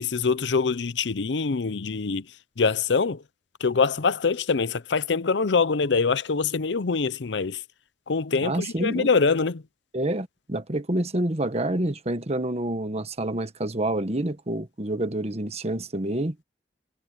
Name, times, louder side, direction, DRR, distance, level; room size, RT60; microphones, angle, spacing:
voice 1, 0.0-2.2 2.6-3.2 3.6-7.6 8.1-9.6, left 4 dB, 75° left, 0.7 m, -24 dB
voice 2, 8.4-9.1 9.9-16.3, right 1 dB, 35° right, 1.4 m, -28 dB
head